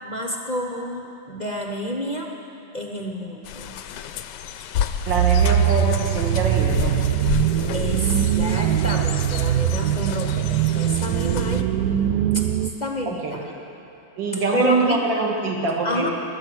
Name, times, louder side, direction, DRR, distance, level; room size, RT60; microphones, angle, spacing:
voice 1, 0.0-2.3 2.7-3.7 7.7-11.7 12.3-12.4 12.8-13.4 14.3-15.2 15.8-16.1, equal, 45° left, 2 dB, 0.5 m, -29 dB
sound 1, 3.4-11.6, left 9 dB, 70° left, 1.1 m, -31 dB
voice 2, 5.1-7.0 13.1-13.4 14.2-16.1, right 3 dB, 65° right, -1 dB, 2.4 m, -24 dB
sound 2, 5.1-12.7, right 11 dB, 85° right, 0.8 m, -21 dB
23.0 x 9.2 x 6.1 m, 3.0 s
omnidirectional pair, 2.2 m